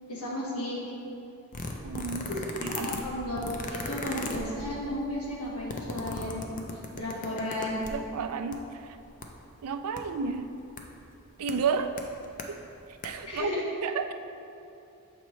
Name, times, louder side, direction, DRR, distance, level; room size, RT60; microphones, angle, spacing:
voice 1, 0.1-0.9 2.3-6.7 6.9-7.9 13.3-13.7, left 1 dB, 90° left, -5 dB, 1.4 m, -34 dB
sound 1, 1.5-8.1 8.5-8.6 8.8-9.2 10.0-10.1 10.8-10.9 11.5-11.6 12.0-12.5 12.9-13.1 13.3-13.4, left 3 dB, 35° left, 0.4 m, -37 dB
voice 2, 1.8-2.3 2.6-3.0 7.9-9.0 9.6-10.5 11.4-12.0 12.5-12.6 13.0-13.6 13.8-14.1, right 5 dB, 80° right, 9 dB, 0.3 m, -32 dB
7.1 x 4.5 x 3.1 m, 2.8 s
head